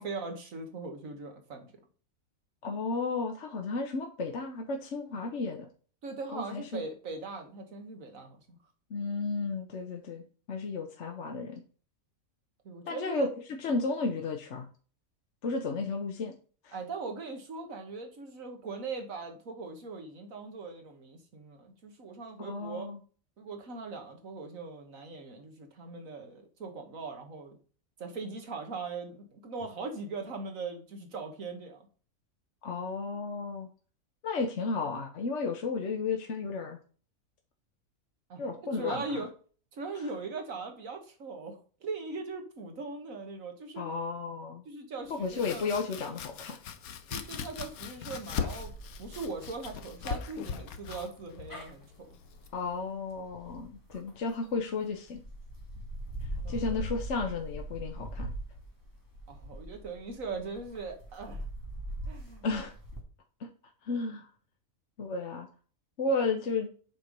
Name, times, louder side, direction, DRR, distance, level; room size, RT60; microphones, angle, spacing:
voice 1, 0.0-1.7 6.0-8.6 12.6-13.3 16.7-22.9 23.4-27.6 28.0-31.8 38.3-38.4 38.7-39.3 39.7-43.8 44.7-45.7 47.1-48.7 49.0-52.1 56.4-56.8 59.3-61.5 62.1-62.5, right 4 dB, 70° right, 4 dB, 1.9 m, -40 dB
voice 2, 2.6-5.7 6.3-6.8 8.9-11.6 12.8-13.3 13.6-14.7 15.4-16.3 16.6-16.7 22.4-23.0 32.6-33.7 34.2-36.8 38.4-39.2 43.8-44.6 45.1-46.6 52.5-55.2 56.5-58.3 62.4-62.7 63.4-63.5 63.8-64.3 65.0-65.5 66.0-66.7, left 4 dB, 60° left, 3 dB, 1.2 m, -33 dB
Domestic sounds home sounds, 45.1-52.8, left 7 dB, 90° left, 1.2 m, -40 dB
sound 1, 48.6-54.6 55.1-63.0, right 1 dB, 15° left, 1.8 m, -42 dB
7.7 x 4.5 x 5.2 m, 0.40 s
omnidirectional pair, 1.5 m